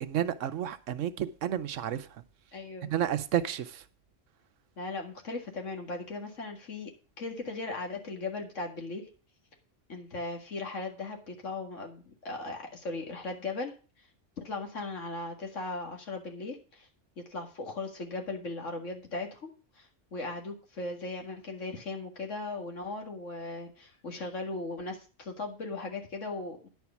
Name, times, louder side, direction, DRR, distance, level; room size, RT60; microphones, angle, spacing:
voice 1, 0.0-2.1 2.9-3.8, right 10 dB, 80° right, 1.1 m, -31 dB
voice 2, 2.5-2.9 4.8-6.9 7.2-9.0 9.9-13.7 14.4-16.9 17.3-19.5 19.8-26.7, left 3 dB, 80° left, 2.3 m, -38 dB
10.5 x 4.7 x 7.0 m
omnidirectional pair, 1.3 m